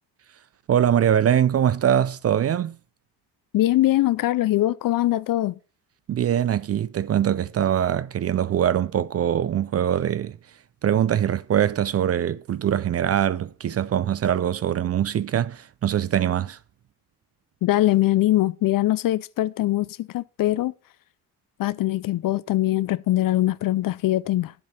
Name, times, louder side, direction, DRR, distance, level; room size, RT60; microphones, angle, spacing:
voice 1, 0.7-2.8 6.1-10.4 10.8-16.6, right 10 dB, 35° right, 0.4 m, -22 dB
voice 2, 3.5-5.6 17.6-20.7 21.6-24.5, left 15 dB, 50° left, 0.5 m, -22 dB
7.9 x 7.7 x 4.2 m
supercardioid pair, 85°, 43 cm